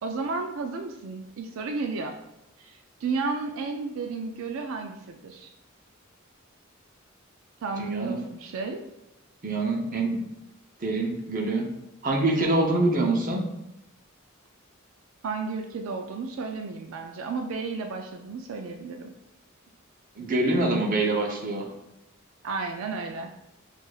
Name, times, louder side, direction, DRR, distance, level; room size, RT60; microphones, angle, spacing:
voice 1, 0.0-2.2 2.6-5.5 7.6-8.8 15.2-19.1 22.4-23.4, right 4 dB, 80° right, 4 dB, 0.4 m, -33 dB
voice 2, 7.8-8.2 9.4-10.2 10.8-11.7 12.0-13.4 20.2-21.7, right 2 dB, 40° right, 0 dB, 0.6 m, -25 dB
6.3 x 2.5 x 2.3 m, 0.89 s
head